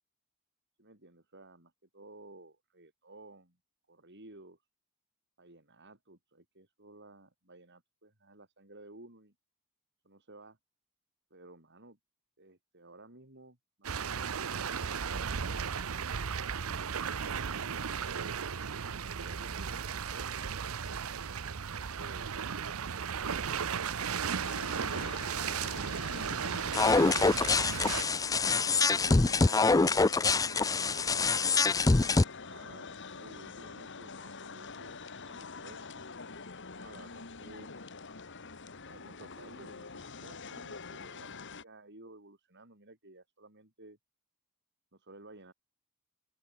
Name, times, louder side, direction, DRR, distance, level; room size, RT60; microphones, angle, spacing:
voice 1, 0.8-3.6 3.9-4.6 5.4-9.3 10.0-10.6 11.3-12.0 12.4-15.6 16.6-17.4 17.8-18.3 18.8-21.0 21.8-23.6 29.0-29.7 30.9-31.7 32.5-34.9 35.2-36.3 36.7-37.7 38.8-44.0 44.9-45.5, right 2 dB, 55° right, 6.2 m, -54 dB
sound 1, 13.8-28.0, right 6 dB, 70° right, 0.8 m, -35 dB
sound 2, 24.4-41.6, left 4 dB, 55° left, 2.0 m, -46 dB
sound 3, 26.7-32.2, left 3 dB, 15° left, 0.4 m, -25 dB
open air
head